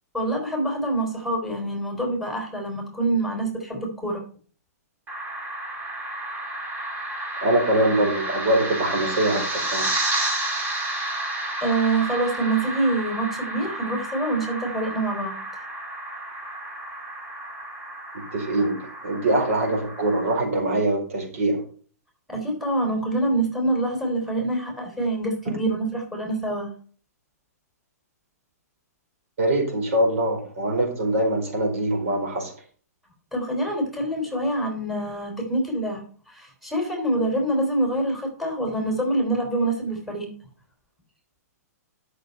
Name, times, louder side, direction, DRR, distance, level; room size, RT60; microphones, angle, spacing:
voice 1, 0.1-4.2 11.6-15.4 22.3-26.7 33.3-40.3, right 2 dB, ahead, 0 dB, 3.9 m, -26 dB
sound 1, 5.1-20.4, right 1 dB, 20° right, 3.6 m, -31 dB
voice 2, 7.4-9.9 18.3-21.6 29.4-32.5, right 1 dB, 55° right, 2 dB, 4.7 m, -23 dB
12.0 x 6.7 x 5.5 m, 0.43 s
figure-of-eight pair, 115°, 9 cm